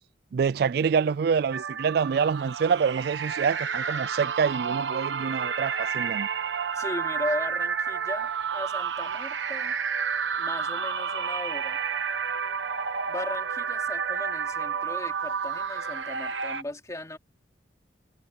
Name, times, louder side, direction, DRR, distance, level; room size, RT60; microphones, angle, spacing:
voice 1, 0.3-6.3, right 6 dB, 60° right, 0.3 m, -26 dB
sound 1, 1.5-16.6, right 6 dB, 85° right, 1.2 m, -30 dB
voice 2, 6.7-9.8 10.4-11.8 13.1-17.2, left 1 dB, 20° left, 2.8 m, -37 dB
head